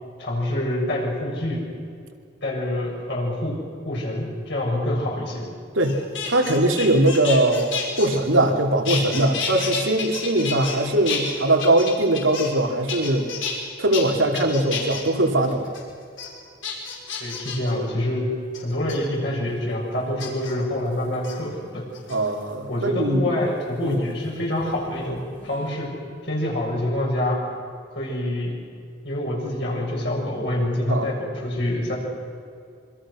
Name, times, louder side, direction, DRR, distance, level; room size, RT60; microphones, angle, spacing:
voice 1, 0.2-1.6 2.4-3.6 3.8-5.4 17.2-18.3 18.6-21.8 22.7-25.9 26.2-27.4 27.9-28.6 29.0-32.0, left 1 dB, 60° left, -3 dB, 7.3 m, -26 dB
sound 1, 5.8-8.6 8.9-10.8 11.1-12.6 12.9-13.5 13.9-14.0 14.4-15.0 15.5-15.8 16.2-16.3 16.6-17.7 18.5-19.0 20.2-20.5 21.1-21.3 21.9-22.5 23.9-25.1 25.4-25.8, left 6 dB, 80° left, 5.9 m, -31 dB
voice 2, 6.3-7.7 8.0-13.3 13.8-15.6 22.1-23.3 23.8-24.0 30.9-31.1, right 1 dB, 85° right, 2 dB, 3.1 m, -21 dB
26.5 x 25.0 x 6.4 m, 2.3 s
head